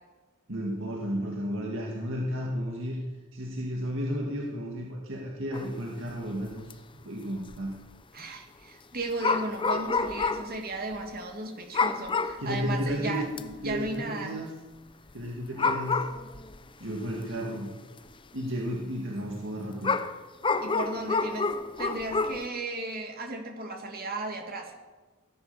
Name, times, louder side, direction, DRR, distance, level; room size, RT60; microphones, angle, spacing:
voice 1, 0.5-3.0 3.3-6.7 7.0-7.7 12.4-13.3 13.6-14.5 15.1-16.0 16.8-17.8 18.3-20.0, equal, 60° right, -1 dB, 2.2 m, -33 dB
sound 1, 5.5-5.8 6.1-6.2 6.5-6.7 7.5-7.8 9.2-10.6 10.9-11.0 11.7-12.5 12.9-13.0 13.4-13.9 15.2-15.3 15.6-16.6 17.4-17.5 19.8-22.4, left 4 dB, 25° left, 0.7 m, -28 dB
voice 2, 8.1-14.4 20.6-21.5 21.8-24.7, right 2 dB, 45° right, 3 dB, 2.6 m, -35 dB
17.0 x 11.5 x 7.0 m, 1.3 s
head